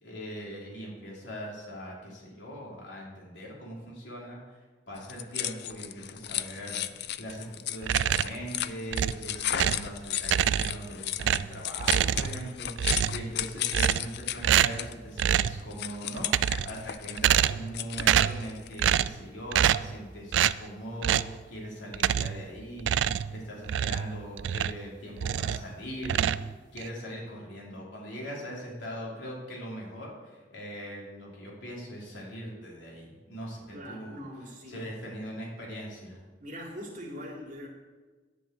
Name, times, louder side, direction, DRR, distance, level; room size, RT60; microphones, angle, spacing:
voice 1, 0.0-4.6 4.9-26.4 26.7-34.2 34.7-36.2, equal, 80° left, -3 dB, 3.2 m, -41 dB
sound 1, 5.0-18.8, left 12 dB, 65° left, 0.4 m, -35 dB
sound 2, 7.8-8.4 8.9-9.9 10.2-10.9 11.2-12.5 12.8-13.3 13.7-14.2 14.4-14.9 15.2-15.6 16.2-16.8 17.2-17.7 18.0-18.4 18.8-19.2 19.5-19.9 20.3-20.6 21.0-21.3 21.9-22.4 22.8-24.8 25.2-25.7 26.0-26.9, right 10 dB, 80° right, 0.3 m, -26 dB
voice 2, 9.3-9.8 16.7-16.8 33.7-34.8 36.4-37.7, equal, 45° right, -1 dB, 2.4 m, -42 dB
10.0 x 5.6 x 8.2 m, 1.3 s
head